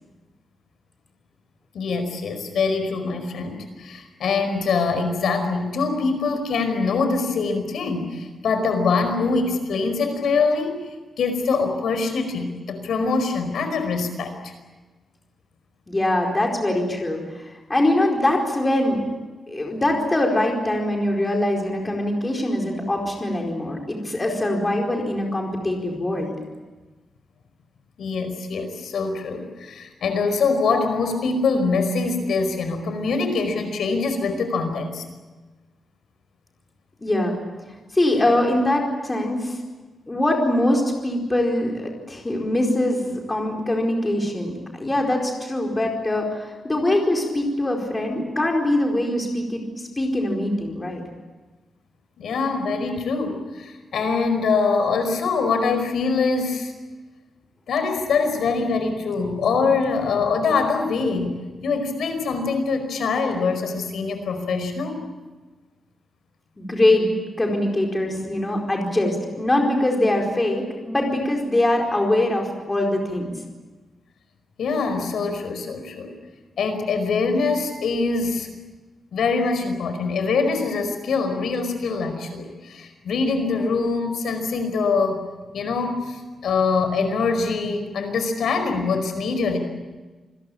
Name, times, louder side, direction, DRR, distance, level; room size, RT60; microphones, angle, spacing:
voice 1, 1.7-10.8 11.2-14.5 28.0-35.0 52.2-56.7 57.7-61.3 61.6-65.0 74.6-76.1 76.6-78.5 79.1-85.2 85.5-89.6, left 4 dB, 80° left, 7 dB, 4.9 m, -24 dB
voice 2, 15.9-19.0 19.5-26.3 37.0-37.4 37.9-39.6 40.1-51.0 66.6-67.1 67.4-73.3, left 1 dB, 15° left, 1 dB, 4.6 m, -23 dB
27.5 x 21.0 x 8.6 m, 1.2 s
wide cardioid pair, 170°, 0 cm